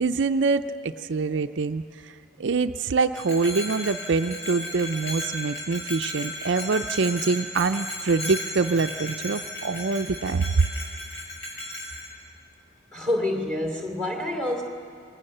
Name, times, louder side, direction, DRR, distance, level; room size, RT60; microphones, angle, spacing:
voice 1, 0.0-10.6, right 4 dB, 60° right, 8 dB, 0.5 m, -25 dB
Bell, 3.1-12.1, left 1 dB, 80° left, 6.1 m, -35 dB
voice 2, 12.9-14.6, left 1 dB, 5° left, 1 dB, 2.9 m, -27 dB
28.5 x 21.0 x 6.7 m, 2.4 s
head